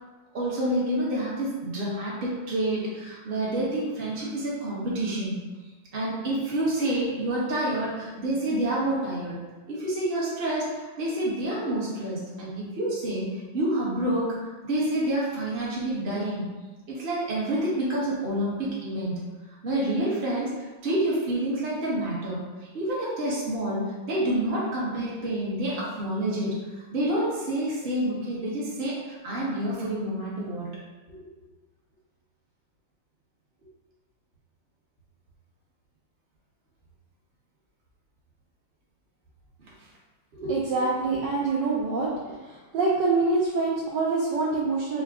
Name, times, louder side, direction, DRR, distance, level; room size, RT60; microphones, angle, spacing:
voice 1, 0.3-5.4 5.9-9.4 9.7-14.4 14.6-16.5 16.9-19.2 19.6-20.5 20.8-22.4 22.7-26.6 26.9-30.7 31.1-31.2 40.3-40.6, right 1 dB, 35° right, -6 dB, 0.9 m, -28 dB
voice 2, 40.5-42.1 42.4-45.0, right 3 dB, 70° right, -4 dB, 1.1 m, -25 dB
4.8 x 2.2 x 3.5 m, 1.2 s
omnidirectional pair, 2.3 m